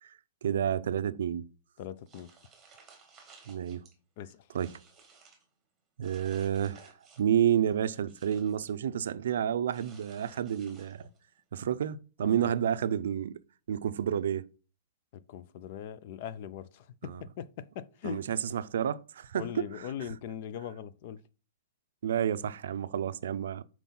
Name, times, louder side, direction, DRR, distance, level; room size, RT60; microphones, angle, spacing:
voice 1, 0.4-1.5 3.5-3.8 4.5-4.7 6.0-6.9 7.2-11.0 11.5-13.4 13.7-14.5 17.0-17.2 18.0-19.7 22.0-23.6, right 9 dB, 65° right, 0.5 m, -30 dB
voice 2, 1.8-2.3 4.2-4.5 12.2-12.5 15.1-18.3 19.3-21.2, left 9 dB, 35° left, 0.4 m, -41 dB
sound 1, 2.1-3.9 4.3-5.4 6.0-7.4 7.7-8.8 9.7-11.2, right 4 dB, 10° right, 1.3 m, -57 dB
5.9 x 4.5 x 5.4 m
hypercardioid pair, 175°, 0 cm